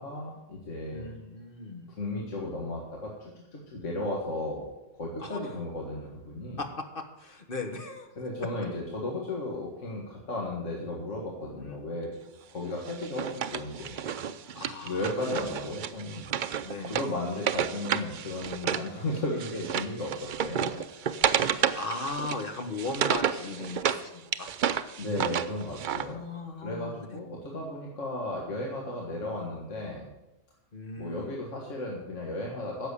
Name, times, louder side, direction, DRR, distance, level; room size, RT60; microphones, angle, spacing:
voice 1, 0.0-1.1 2.0-4.7 4.9-6.6 8.2-12.1 12.5-14.0 14.8-16.3 16.9-20.7 25.0-26.2 26.4-30.1 31.0-32.9, left 1 dB, 65° left, -1 dB, 2.0 m, -35 dB
voice 2, 0.9-1.9 5.2-5.4 6.6-8.1 11.6-11.8 14.6-15.3 16.6-17.0 21.5-24.5 26.0-27.2 30.7-31.4, left 3 dB, 45° left, 5 dB, 1.5 m, -37 dB
Wood, 12.9-18.9 19.2-24.0 24.3-26.1, right 8 dB, 55° right, 0.5 m, -31 dB
10.5 x 7.4 x 8.3 m, 0.97 s
omnidirectional pair, 1.3 m